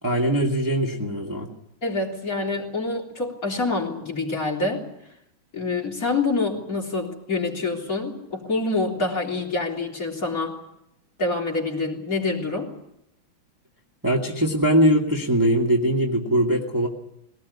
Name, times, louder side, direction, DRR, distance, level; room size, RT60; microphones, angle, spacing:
voice 1, 0.0-1.5 14.0-16.9, equal, 10° right, -1 dB, 2.2 m, -21 dB
voice 2, 1.8-4.9 5.5-10.6 11.2-12.7, left 3 dB, 40° left, -1 dB, 4.0 m, -26 dB
21.5 x 18.5 x 9.7 m, 0.81 s
omnidirectional pair, 2.2 m